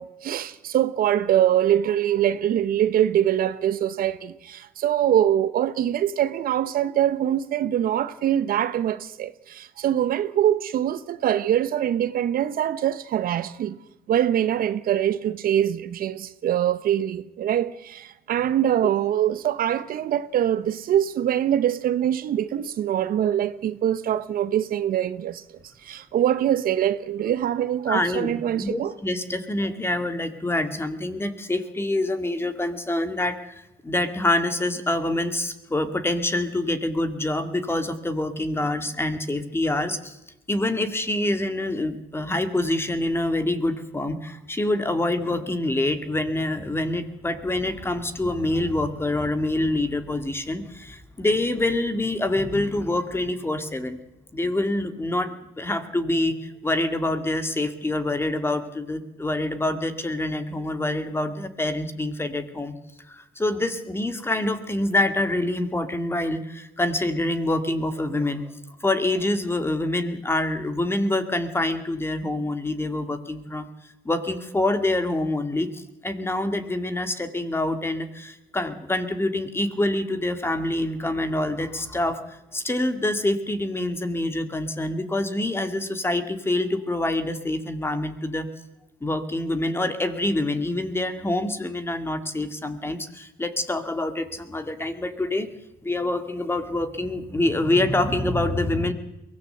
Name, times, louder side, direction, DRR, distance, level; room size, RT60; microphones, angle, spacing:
voice 1, 0.0-13.8 14.1-25.4 25.8-28.9, right 10 dB, 60° right, 1.0 m, -23 dB
voice 2, 27.9-40.2 40.5-54.0 54.3-62.7 63.1-68.4 68.8-73.7 74.0-88.5 89.0-95.5 95.8-98.9, left 1 dB, 15° left, 2.2 m, -26 dB
22.5 x 17.5 x 7.9 m
cardioid pair, 110°, 17 cm